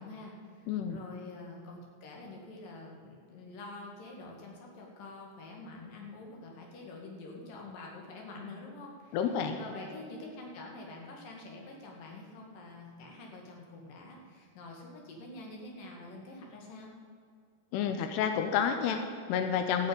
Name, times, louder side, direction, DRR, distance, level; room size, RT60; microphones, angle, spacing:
voice 1, 0.0-9.2 9.6-16.9, left 2 dB, 60° left, 0 dB, 3.4 m, -46 dB
voice 2, 0.7-1.0 9.1-9.6 17.7-19.9, left 7 dB, 90° left, 6 dB, 2.8 m, -30 dB
14.5 x 6.6 x 8.5 m, 2.2 s
omnidirectional pair, 4.6 m